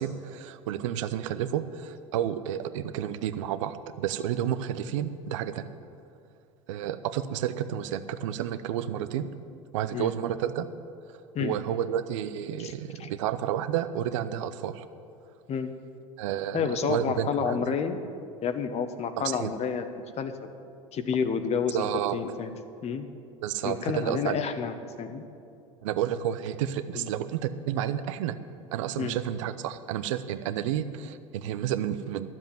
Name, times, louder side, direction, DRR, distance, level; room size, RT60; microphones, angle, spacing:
voice 1, 0.0-5.7 6.7-9.3 9.7-10.7 11.1-14.8 16.2-17.6 19.2-19.5 21.7-22.2 23.4-24.4 25.8-28.4 28.7-32.3, right 10 dB, 75° right, 12 dB, 0.7 m, -31 dB
voice 2, 16.5-18.0 18.4-20.5 20.9-22.5 22.8-23.1 23.6-25.2 26.9-27.1 29.0-29.2, left 6 dB, 40° left, 9 dB, 1.1 m, -30 dB
12.5 x 7.6 x 9.1 m, 2.6 s
hypercardioid pair, 80°, 16 cm